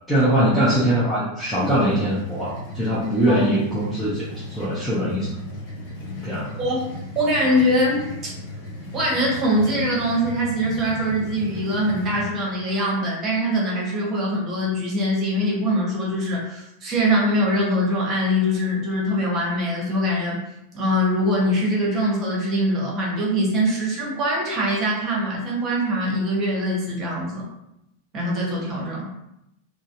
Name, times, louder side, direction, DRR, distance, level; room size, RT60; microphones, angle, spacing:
voice 1, 0.1-5.3 6.2-6.6, right 1 dB, ahead, -10 dB, 0.8 m, -22 dB
sound 1, 1.5-12.2, left 1 dB, 45° left, 0.8 m, -36 dB
voice 2, 6.6-8.3 8.9-20.4 20.7-27.5 28.1-29.1, equal, 25° right, -3 dB, 1.1 m, -23 dB
3.8 x 2.1 x 2.6 m, 0.84 s
figure-of-eight pair, 90°, 0 cm